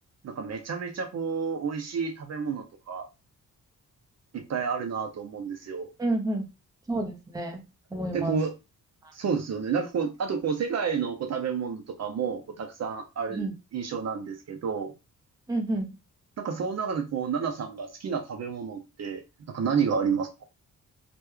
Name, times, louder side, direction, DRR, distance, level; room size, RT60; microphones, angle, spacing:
voice 1, 0.2-3.1 4.3-5.9 8.1-8.5 9.1-14.9 16.4-20.3, right 6 dB, 55° right, 0.5 m, -30 dB
voice 2, 6.0-6.4 6.9-7.6 7.9-8.4 13.4-13.5 15.5-15.9, right 1 dB, 10° right, 0.6 m, -29 dB
3.0 x 2.2 x 3.4 m
wide cardioid pair, 155°, 33 cm